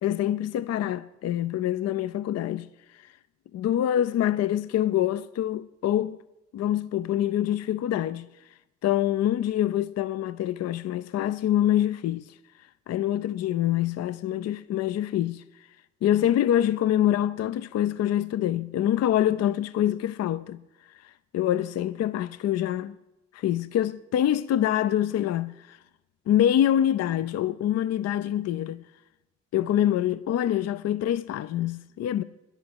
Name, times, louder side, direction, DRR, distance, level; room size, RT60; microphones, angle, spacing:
voice 1, 0.0-3.1 3.5-6.2 6.5-8.3 8.8-15.7 16.0-20.6 20.9-23.0 23.3-25.8 26.3-28.8 29.5-32.2, left 11 dB, 55° left, 0.5 m, -25 dB
10.5 x 8.2 x 9.9 m
cardioid pair, 90°, 30 cm